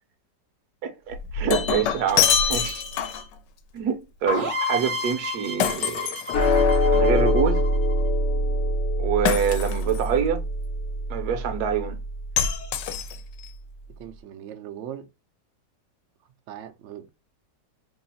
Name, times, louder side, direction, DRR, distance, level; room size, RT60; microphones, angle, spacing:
voice 1, 0.8-2.8 3.7-6.2 6.9-7.6 9.0-10.5 11.1-12.0, right 7 dB, 70° right, 1.1 m, -26 dB
Shatter, 1.1-3.3 5.6-6.9 9.3-10.1 12.4-13.5, left 8 dB, 75° left, 1.2 m, -25 dB
sound 1, 4.3-8.0, left 1 dB, 45° right, 0.7 m, -31 dB
sound 2, 6.3-12.9, left 1 dB, 60° left, 0.7 m, -24 dB
voice 2, 14.0-15.1 16.5-17.1, right 10 dB, 85° right, 0.6 m, -39 dB
3.0 x 2.4 x 4.0 m
omnidirectional pair, 1.9 m